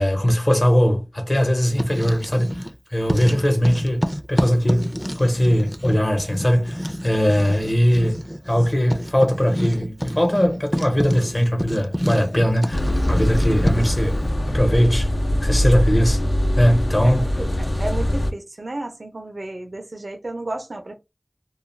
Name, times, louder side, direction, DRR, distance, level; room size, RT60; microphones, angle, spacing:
voice 1, 0.0-2.5 2.9-12.8 13.1-14.2 14.5-15.1 15.4-16.2 16.6-17.3, equal, 40° left, 0.9 m, -20 dB
Writing, 1.6-2.8 3.1-14.0, equal, 5° left, 0.4 m, -29 dB
sound 1, 12.7-18.3, equal, 70° left, 0.4 m, -22 dB
voice 2, 17.0-21.0, right 2 dB, 90° right, 0.5 m, -33 dB
2.3 x 2.2 x 3.1 m
wide cardioid pair, 40°, 0 cm